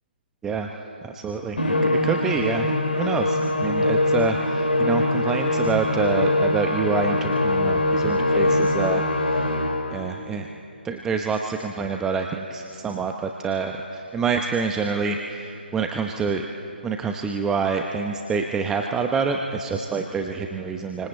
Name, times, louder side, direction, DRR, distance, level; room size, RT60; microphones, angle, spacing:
voice 1, 1.0-1.7 2.0-2.7 2.9-9.5 9.9-10.5 10.8-16.5 16.8-21.1, right 5 dB, 10° right, 3 dB, 0.9 m, -27 dB
Musical instrument, 1.6-10.0, left 2 dB, 65° left, 3.7 m, -22 dB
27.0 x 25.5 x 8.2 m, 2.8 s
figure-of-eight pair, 145°, 6 cm